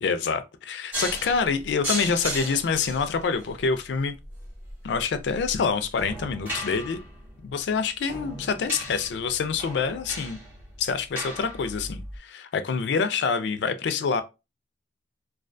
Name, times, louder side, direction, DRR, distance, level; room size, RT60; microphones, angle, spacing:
voice 1, 0.0-4.2 4.8-7.0 7.4-10.4 10.8-14.2, left 5 dB, 65° left, 0.3 m, -26 dB
sound 1, 0.9-12.2, equal, 10° right, 0.9 m, -36 dB
2.3 x 2.2 x 2.5 m
head